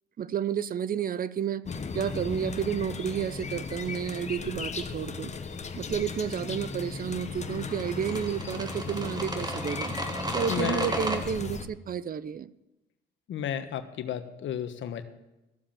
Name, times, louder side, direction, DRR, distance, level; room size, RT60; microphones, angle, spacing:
voice 1, 0.2-1.6 1.9-5.3 5.8-9.9 10.3-12.5, right 8 dB, 45° right, 17 dB, 0.6 m, -31 dB
sound 1, 1.6-11.7, left 4 dB, 35° left, 1.2 m, -36 dB
sound 2, 7.6-11.2, right 1 dB, 20° right, 1.9 m, -34 dB
voice 2, 10.5-10.9 13.3-15.0, left 9 dB, 70° left, 9 dB, 1.3 m, -32 dB
14.0 x 7.5 x 7.2 m, 0.99 s
cardioid pair, 90°, 20 cm